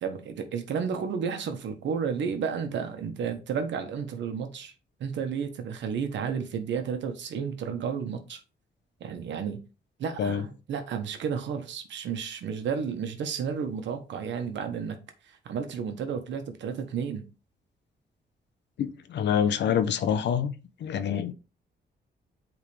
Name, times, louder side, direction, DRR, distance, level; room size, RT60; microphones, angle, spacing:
voice 1, 0.0-4.7 5.0-8.4 9.0-9.6 10.0-15.0 15.4-17.2, right 6 dB, 85° right, 1.2 m, -32 dB
voice 2, 18.8-20.5 20.8-21.3, left 8 dB, 75° left, 0.7 m, -26 dB
8.6 x 3.7 x 3.2 m
wide cardioid pair, 145°, 18 cm